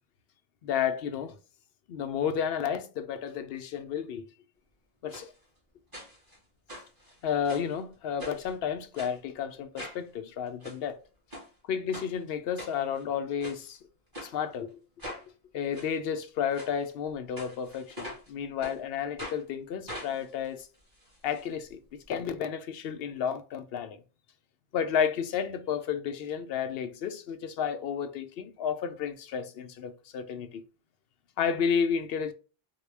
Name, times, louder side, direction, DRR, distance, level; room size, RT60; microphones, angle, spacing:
voice 1, 0.6-1.3 1.9-4.3 5.0-5.3 7.2-11.0 11.7-13.8 14.2-14.7 15.5-20.7 21.2-21.8 22.1-24.0 24.7-30.6 31.4-32.3, left 7 dB, 70° left, 0.7 m, -31 dB
sound 1, 5.1-5.3 5.9-6.4 6.7-7.7 8.2-8.5 9.0-9.2 9.8-10.0 10.5-10.8 11.3-11.5 11.9-12.1 12.6-13.0 13.4-13.6 14.1-14.3 15.0-15.2 15.7-15.9 16.5-16.7 17.4-18.3 18.6-18.8 19.2-19.4 19.9-21.4 21.7-21.8 22.0-22.1, equal, 20° right, 1.4 m, -42 dB
3.6 x 2.2 x 3.3 m
omnidirectional pair, 1.1 m